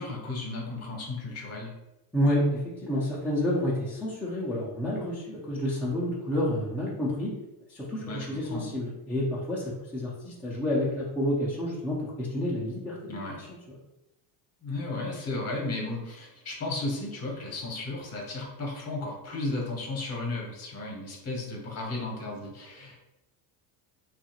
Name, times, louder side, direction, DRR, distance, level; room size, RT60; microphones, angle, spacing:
voice 1, 0.0-1.7 8.0-8.7 13.1-13.4 14.6-23.0, left 2 dB, 35° left, 0 dB, 0.8 m, -34 dB
voice 2, 2.1-7.3 7.7-9.6 9.9-13.5, left 1 dB, 5° left, -7 dB, 0.3 m, -29 dB
2.7 x 2.4 x 2.8 m, 0.94 s
supercardioid pair, 115°, 47 cm